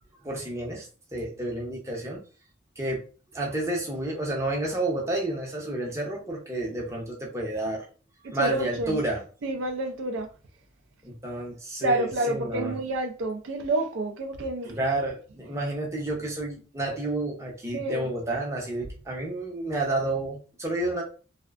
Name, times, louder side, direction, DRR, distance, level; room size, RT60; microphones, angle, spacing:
voice 1, 0.2-0.9 1.1-2.2 2.8-3.0 3.3-7.8 8.3-9.2 11.0-12.8 14.6-21.0, right 2 dB, 15° right, 0.6 m, -30 dB
voice 2, 8.2-9.0 9.4-10.3 11.8-14.8 17.7-18.1, right 1 dB, 80° right, 0.4 m, -28 dB
2.5 x 2.1 x 2.3 m
head